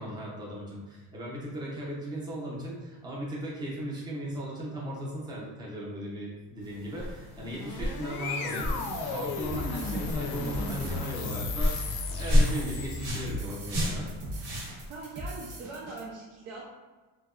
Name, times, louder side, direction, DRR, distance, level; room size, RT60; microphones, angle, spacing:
voice 1, 0.0-14.1, equal, 10° right, -5 dB, 0.5 m, -37 dB
sound 1, 6.6-15.0, left 1 dB, 65° right, 1.0 m, -31 dB
sound 2, 7.2-13.6, left 3 dB, 55° left, 0.5 m, -35 dB
sound 3, 8.6-16.0, right 1 dB, 45° right, 0.7 m, -41 dB
voice 2, 14.9-16.6, right 3 dB, 85° right, -4 dB, 0.6 m, -41 dB
2.7 x 2.2 x 2.3 m, 1.3 s
cardioid pair, 145°, 43 cm